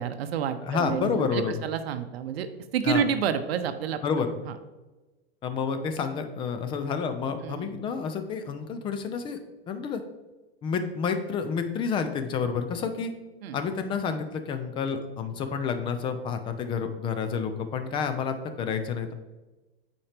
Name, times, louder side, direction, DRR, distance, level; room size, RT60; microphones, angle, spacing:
voice 1, 0.0-2.5 2.7-4.0 4.5-4.6 7.4-7.7 13.4-13.6, right 8 dB, 75° right, 9 dB, 0.7 m, -29 dB
voice 2, 0.6-1.6 2.8-3.0 4.0-4.4 5.4-9.4 9.7-10.0 10.6-13.1 13.5-19.1, left 6 dB, 15° left, 8 dB, 0.4 m, -29 dB
8.5 x 4.3 x 3.4 m, 1.1 s
hypercardioid pair, 140°, 31 cm